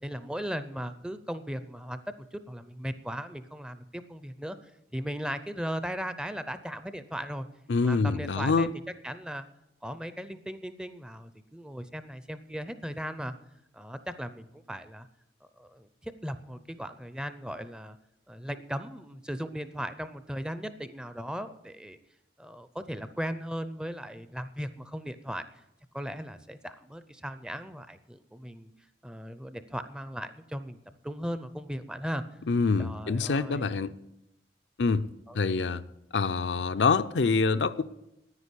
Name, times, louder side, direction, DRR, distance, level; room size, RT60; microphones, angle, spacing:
voice 1, 0.0-4.6 4.9-7.5 7.8-9.5 9.8-13.3 13.7-15.1 15.6-18.0 18.3-22.0 22.4-25.4 25.9-28.7 29.0-30.8 31.0-32.2 32.8-33.7 35.3-35.4, equal, 5° right, 0.5 m, -37 dB
voice 2, 7.7-8.7 32.5-33.9 34.8-35.1 35.3-35.8 36.1-37.8, left 4 dB, 70° left, 0.5 m, -25 dB
9.8 x 9.7 x 8.3 m
head